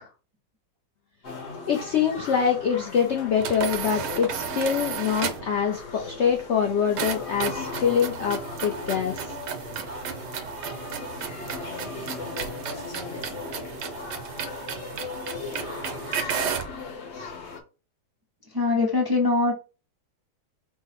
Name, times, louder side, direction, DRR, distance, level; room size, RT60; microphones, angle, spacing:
sound 1, 1.2-17.6, left 4 dB, 50° left, 1.0 m, -38 dB
voice 1, 1.7-9.3, left 7 dB, 80° left, 4 dB, 0.6 m, -25 dB
sound 2, 3.4-5.6 7.0-16.8, right 8 dB, 90° right, 1.3 m, -33 dB
voice 2, 18.5-19.5, left 3 dB, 30° right, 0 dB, 0.4 m, -22 dB
4.6 x 2.0 x 4.1 m, 0.33 s
omnidirectional pair, 1.8 m